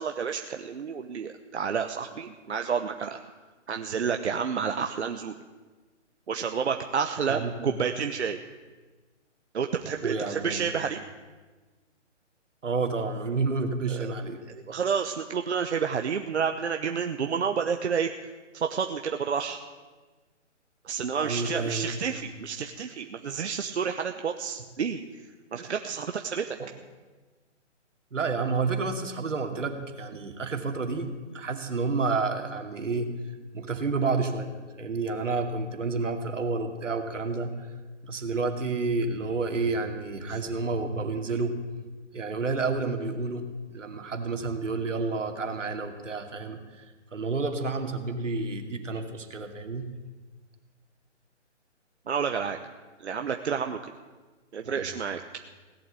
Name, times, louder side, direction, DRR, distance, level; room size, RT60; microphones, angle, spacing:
voice 1, 0.0-3.2 3.7-5.3 6.3-8.4 9.5-11.0 13.9-14.1 14.5-18.1 18.5-19.6 20.8-25.2 25.5-26.6 40.3-40.4 52.1-52.6 53.0-53.9 54.5-55.2, right 6 dB, 65° right, 5 dB, 1.0 m, -30 dB
voice 2, 7.3-7.7 10.0-10.6 12.6-14.4 21.2-22.2 25.6-25.7 26.6-26.7 28.1-33.1 33.5-34.5 34.8-37.7 38.0-41.6 42.1-43.4 43.7-49.9 54.6-54.9, right 4 dB, 85° right, 5 dB, 2.5 m, -30 dB
17.0 x 8.3 x 8.3 m, 1.3 s
hypercardioid pair, 175°, 37 cm